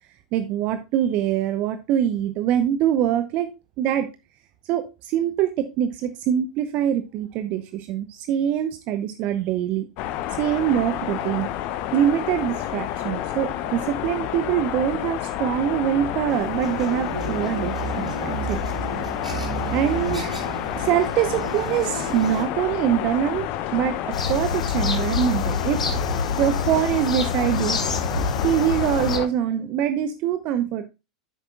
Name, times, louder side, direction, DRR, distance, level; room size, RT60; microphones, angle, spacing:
voice 1, 0.3-3.5 3.8-4.1 4.6-9.9 10.4-11.5 11.9-18.7 19.7-20.4 20.7-23.5 23.7-26.0 26.3-30.8, right 10 dB, 40° right, 10 dB, 0.8 m, -24 dB
sound 1, 10.0-29.3, left 12 dB, 40° left, 0.9 m, -29 dB
sound 2, 16.3-22.4, right 3 dB, 90° right, 2.9 m, -32 dB
sound 3, 24.1-29.2, left 4 dB, 75° left, 1.5 m, -27 dB
10.0 x 8.0 x 2.3 m, 0.26 s
figure-of-eight pair, 90°, 4 cm